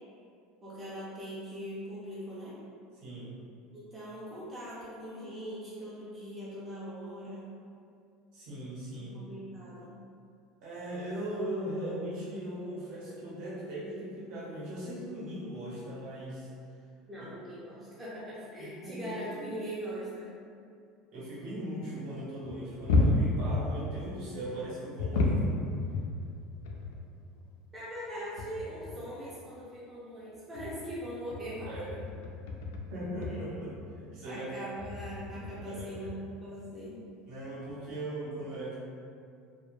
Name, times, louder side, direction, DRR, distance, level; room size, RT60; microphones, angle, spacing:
voice 1, 0.6-2.5 3.7-7.5 9.1-10.0 17.1-20.3 27.7-32.0 33.3-33.4 34.2-37.0, equal, 10° right, -10 dB, 0.4 m, -41 dB
voice 2, 3.0-3.3 8.3-9.2 10.6-16.5 18.6-19.1 21.1-25.5 31.6-31.9 32.9-34.7 35.7-36.1 37.3-38.8, right 1 dB, 50° right, -7 dB, 0.7 m, -39 dB
sound 1, 22.4-24.0 25.0-27.0 27.4-27.5 28.0-28.1 28.4-29.0 30.3-32.9 33.2-33.5 34.8-36.2 37.4-37.5 37.7-37.9, left 2 dB, 85° left, 0.3 m, -31 dB
2.1 x 2.1 x 2.9 m, 2.4 s
cardioid pair, 175°, 0 cm